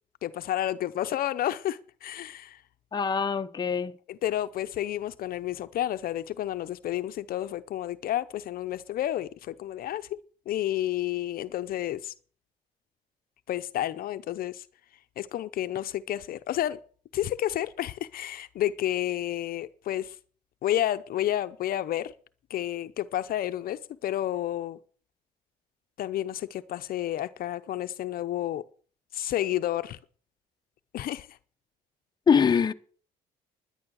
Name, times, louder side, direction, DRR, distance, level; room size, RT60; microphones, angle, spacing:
voice 1, 0.2-2.6 4.1-10.2 10.5-12.1 13.5-14.7 15.2-16.8 17.1-20.2 20.6-22.1 22.5-24.8 26.0-28.6 29.1-30.0 30.9-31.4, left 12 dB, 60° left, 0.7 m, -30 dB
voice 2, 2.9-3.9 32.3-32.7, left 6 dB, 25° left, 0.8 m, -23 dB
11.5 x 10.5 x 6.3 m
cardioid pair, 110°, 17 cm